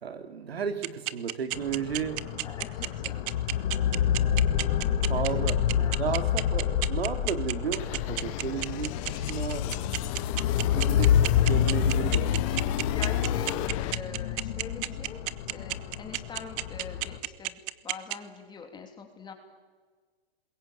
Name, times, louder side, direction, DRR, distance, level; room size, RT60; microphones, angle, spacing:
voice 1, 0.0-2.4 5.1-5.6 6.0-9.7 10.6-12.7, right 7 dB, 80° right, 2.6 m, -33 dB
sound 1, 0.8-18.2, right 23 dB, 25° right, 0.7 m, -31 dB
sound 2, 1.5-17.2, left 9 dB, 50° left, 2.5 m, -28 dB
voice 2, 2.4-3.2 5.0-6.1 12.9-15.2 15.5-19.3, left 5 dB, 15° left, 3.2 m, -43 dB
sound 3, 7.8-13.9, left 18 dB, 35° left, 0.8 m, -35 dB
26.0 x 21.5 x 8.7 m
hypercardioid pair, 135°, 30 cm